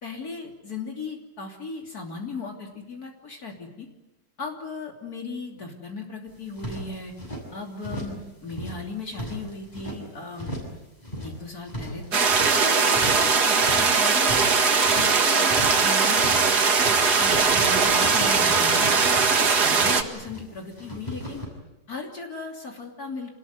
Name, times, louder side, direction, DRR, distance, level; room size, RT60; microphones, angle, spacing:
voice 1, 0.0-3.9 4.4-7.1 7.5-10.5 11.2-12.3 12.6-14.5 14.9-16.5 17.2-19.2 19.6-21.4 21.9-23.3, left 3 dB, 60° left, 2 dB, 3.6 m, -37 dB
sound 1, 6.3-7.4 7.8-8.2 8.5-10.0 10.4-10.8 11.0-12.6 12.9-13.3 13.6-15.1 15.5-15.9 16.1-16.5 16.8-20.4 20.7-21.5, equal, 25° left, 6.8 m, -36 dB
sound 2, 12.1-20.0, right 5 dB, 70° right, 2.4 m, -20 dB
27.5 x 20.0 x 9.5 m, 1.0 s
omnidirectional pair, 1.8 m